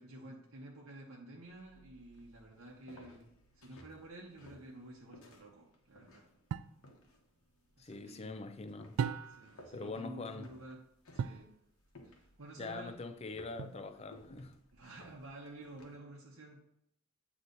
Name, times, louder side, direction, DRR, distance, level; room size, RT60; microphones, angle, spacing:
voice 1, 0.0-3.3 3.5-6.3 7.8-8.4 9.3-10.9 11.1-11.5 12.0-12.9 14.7-16.6, right 1 dB, 75° right, 0.8 m, -51 dB
sound 1, 1.4-16.0, left 1 dB, 80° left, 1.0 m, -60 dB
sound 2, 6.5-6.8 9.0-9.6 11.2-11.5 13.6-14.1, right 7 dB, 90° right, 0.3 m, -37 dB
voice 2, 7.8-9.0 9.7-10.5 12.6-14.6, left 3 dB, 30° left, 0.4 m, -43 dB
8.1 x 3.0 x 3.9 m
head